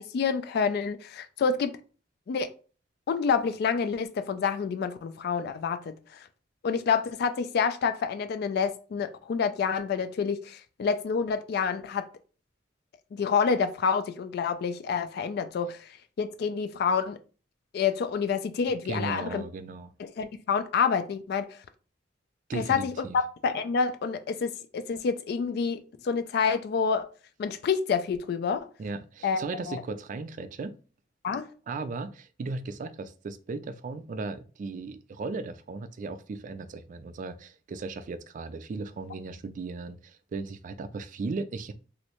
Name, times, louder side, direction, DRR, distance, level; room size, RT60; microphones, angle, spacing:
voice 1, 0.0-1.7 2.3-2.5 3.1-6.2 6.6-12.0 13.1-15.9 16.2-17.2 17.7-19.4 20.2-21.5 22.5-27.1 27.4-28.7 29.2-29.4 29.7-29.8 31.2-31.5, left 6 dB, 60° left, 0.3 m, -28 dB
voice 2, 18.8-19.9 22.5-23.2 28.8-30.8 31.7-41.7, right 3 dB, 45° right, 0.3 m, -36 dB
3.1 x 2.6 x 2.9 m
head